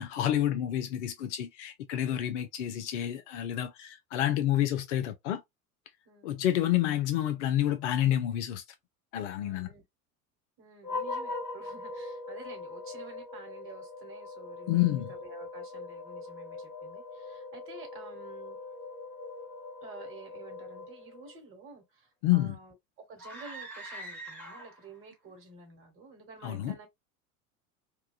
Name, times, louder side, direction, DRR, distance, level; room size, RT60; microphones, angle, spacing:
voice 1, 0.0-5.4 6.2-8.6 9.1-9.7 14.7-15.1 22.2-22.6 26.4-26.7, left 12 dB, 55° left, 0.5 m, -29 dB
voice 2, 6.0-6.4 9.4-9.8 10.6-14.8 15.1-18.6 19.8-22.7 23.1-26.9, right 4 dB, 30° right, 1.3 m, -50 dB
sound 1, 10.8-21.4, left 3 dB, 85° left, 0.9 m, -41 dB
sound 2, 23.2-24.9, right 1 dB, 5° left, 1.2 m, -43 dB
2.9 x 2.2 x 2.3 m
figure-of-eight pair, 80°, 44 cm